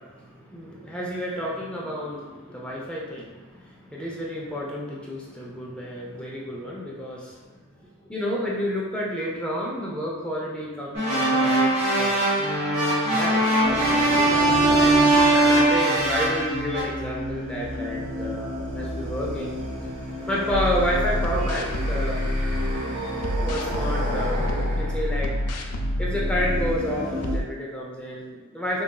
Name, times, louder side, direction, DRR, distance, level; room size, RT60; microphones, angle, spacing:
voice 1, 0.0-7.6 8.0-12.4 13.1-14.7 15.3-19.5 20.3-22.2 23.0-23.1 23.4-24.4 24.8-25.3 26.0-28.8, equal, 5° left, -4 dB, 0.5 m, -30 dB
sound 1, 10.9-16.8, right 1 dB, 30° right, 1.1 m, -20 dB
sound 2, 13.6-27.4, equal, 70° right, 1.1 m, -32 dB
sound 3, 20.5-22.8 23.2-26.8 27.2-27.4, left 1 dB, 90° left, 0.4 m, -27 dB
3.9 x 2.5 x 2.2 m, 1.2 s
head